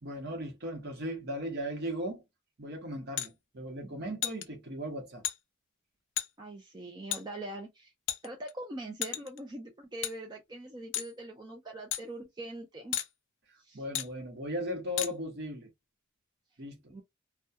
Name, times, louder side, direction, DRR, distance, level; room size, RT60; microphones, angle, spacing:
voice 1, 0.0-2.2 2.6-5.2 13.7-15.7 16.6-16.9, equal, 50° right, 0.9 m, -37 dB
sound 1, 3.2-3.3 4.2-4.4 5.2-5.4 6.2-6.3 7.1-7.2 8.1-8.5 9.0-9.4 10.0-10.1 10.9-11.1 11.9-12.0 12.9-13.1 13.9-14.1 15.0-15.1, left 12 dB, 60° left, 0.4 m, -33 dB
voice 2, 6.4-7.9 8.2-13.0 13.6-13.8 16.9-17.0, right 1 dB, 20° right, 0.4 m, -42 dB
2.3 x 2.2 x 2.7 m
head